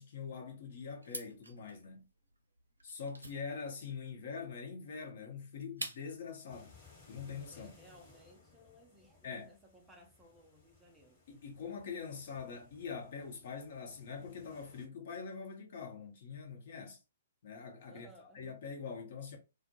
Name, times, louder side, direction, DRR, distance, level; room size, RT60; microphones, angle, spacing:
voice 1, 0.0-2.0 2.8-6.8 7.1-7.7 9.2-9.5 11.3-17.0 17.4-18.1 18.3-19.4, left 5 dB, 50° left, 0.8 m, -44 dB
sound 1, 1.0-6.3, right 1 dB, 80° right, 0.5 m, -48 dB
sound 2, 6.5-14.9, left 4 dB, 25° left, 1.1 m, -62 dB
voice 2, 7.5-11.2 17.9-18.5, equal, 10° right, 0.5 m, -60 dB
2.1 x 2.1 x 2.8 m
figure-of-eight pair, 120°, 0 cm